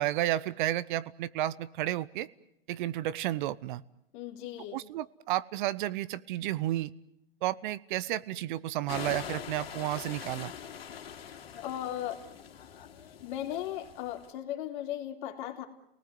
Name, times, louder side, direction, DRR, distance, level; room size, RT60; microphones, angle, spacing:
voice 1, 0.0-2.3 2.7-3.8 4.7-6.9 7.4-10.5, right 14 dB, 55° right, 17 dB, 0.9 m, -32 dB
voice 2, 4.1-4.8 11.6-12.2 13.2-15.7, left 12 dB, 55° left, 4 dB, 3.4 m, -37 dB
sound 1, 8.9-14.3, left 8 dB, 80° left, 3.2 m, -43 dB
29.5 x 19.5 x 9.4 m, 0.80 s
hypercardioid pair, 125°, 29 cm